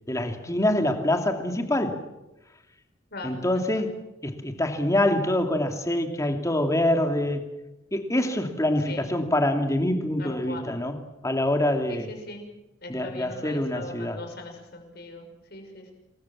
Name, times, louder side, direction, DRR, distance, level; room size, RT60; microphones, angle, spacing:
voice 1, 0.1-2.1 3.2-7.5 7.9-11.0 11.2-12.1 12.9-14.2, left 1 dB, 15° left, 5 dB, 2.8 m, -25 dB
voice 2, 10.2-10.7 11.9-12.4 12.8-15.9, left 2 dB, 50° left, 4 dB, 6.2 m, -40 dB
28.0 x 22.0 x 7.4 m, 0.97 s
head